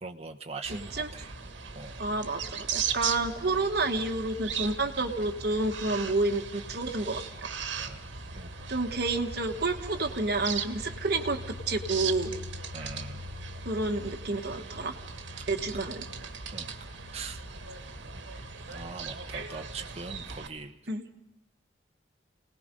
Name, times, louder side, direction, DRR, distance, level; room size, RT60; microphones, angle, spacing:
voice 1, 0.0-1.3 1.7-2.0 7.8-8.1 8.3-8.8 12.7-13.2 15.4-15.9 16.5-16.7 17.1-17.4 18.7-20.8, right 3 dB, 35° right, 3 dB, 1.1 m, -42 dB
sound 1, 0.6-20.5, right 5 dB, 75° right, 1.5 m, -38 dB
voice 2, 0.7-1.1 2.0-7.5 8.7-11.4 11.7-12.3 13.6-14.9 15.5-16.0 20.9-21.0, right 2 dB, 55° right, 5 dB, 1.4 m, -29 dB
28.0 x 19.0 x 5.3 m, 0.87 s
head